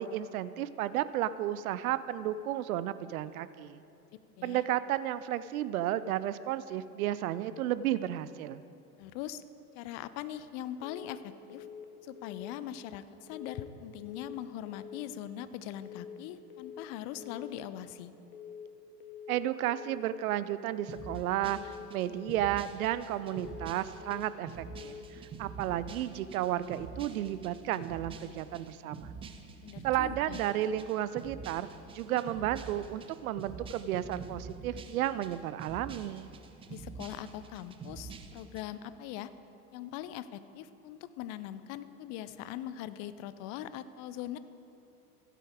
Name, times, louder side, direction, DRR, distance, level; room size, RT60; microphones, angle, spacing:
voice 1, 0.0-3.8 4.4-8.6 19.3-29.1 29.8-36.3, right 12 dB, 65° right, 15 dB, 0.6 m, -33 dB
voice 2, 9.0-9.4 9.7-11.7 12.0-18.1 29.6-30.4 36.7-39.3 39.7-44.4, left 11 dB, 35° left, 14 dB, 0.5 m, -41 dB
sound 1, 10.8-11.2 11.5-11.9 12.2-12.6 13.3-13.7 14.0-14.4 14.7-15.1 15.8-16.2 16.5-16.9 17.2-17.6 18.3-18.7 19.0-19.4 19.7-20.1 20.8-21.2 21.5-21.9 22.2-22.6 23.3-23.7 24.0-24.4 24.7-25.1, left 8 dB, 65° left, 1.1 m, -46 dB
sound 2, 20.9-38.6, right 5 dB, 15° right, 0.4 m, -46 dB
15.5 x 8.3 x 3.6 m, 2.8 s
figure-of-eight pair, 85°, 46 cm